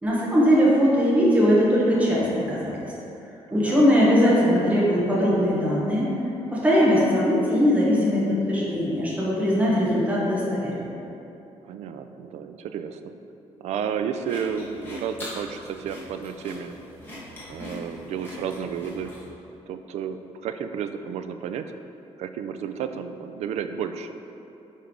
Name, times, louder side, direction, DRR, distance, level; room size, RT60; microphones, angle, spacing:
voice 1, 0.0-2.9 3.5-6.1 6.5-11.0, equal, 10° right, -7 dB, 1.1 m, -20 dB
voice 2, 3.5-4.1 11.7-13.1 13.6-16.7 17.5-19.1 19.7-21.7 22.2-24.1, right 7 dB, 70° right, 8 dB, 0.4 m, -32 dB
sound 1, 14.2-19.3, left 1 dB, 20° left, 1.5 m, -41 dB
9.2 x 3.4 x 3.8 m, 2.8 s
cardioid pair, 165°, 12 cm